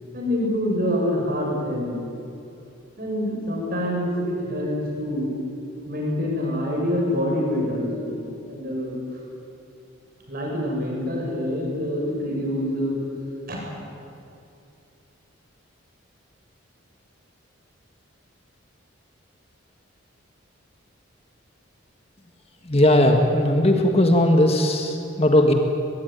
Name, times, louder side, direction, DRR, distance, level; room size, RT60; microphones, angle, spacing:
voice 1, 0.1-2.0 3.0-5.3 5.9-9.0 10.3-12.9 13.5-13.6, left 1 dB, 45° right, -2 dB, 7.8 m, -26 dB
voice 2, 22.6-25.5, left 1 dB, 30° left, 4 dB, 1.7 m, -18 dB
23.0 x 22.0 x 9.5 m, 2.6 s
head